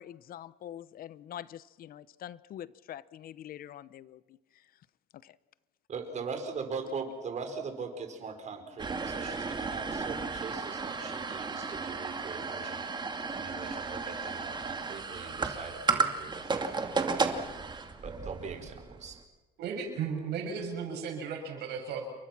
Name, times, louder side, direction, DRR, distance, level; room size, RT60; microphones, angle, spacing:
voice 1, 0.0-4.4 5.2-5.3, left 11 dB, 60° left, 0.9 m, -45 dB
voice 2, 5.9-12.8 13.3-17.0 18.0-19.2, right 5 dB, 45° right, 5.2 m, -41 dB
sound 1, 8.8-19.1, right 4 dB, 25° right, 2.6 m, -34 dB
voice 3, 19.6-22.1, right 6 dB, 75° right, 7.6 m, -35 dB
29.5 x 23.5 x 6.1 m
cardioid pair, 110°, 17 cm